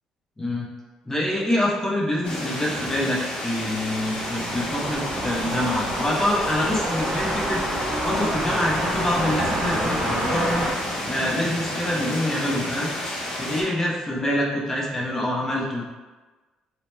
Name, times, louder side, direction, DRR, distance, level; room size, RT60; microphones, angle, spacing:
voice 1, 0.4-0.7 1.1-12.9 13.4-15.8, left 1 dB, 20° left, -3 dB, 0.8 m, -26 dB
sound 1, 2.2-13.6, left 1 dB, 50° left, 0.9 m, -31 dB
sound 2, 3.5-11.8, right 1 dB, 35° right, 0.8 m, -29 dB
2.8 x 2.1 x 3.1 m, 1.3 s
supercardioid pair, 70°, 2 cm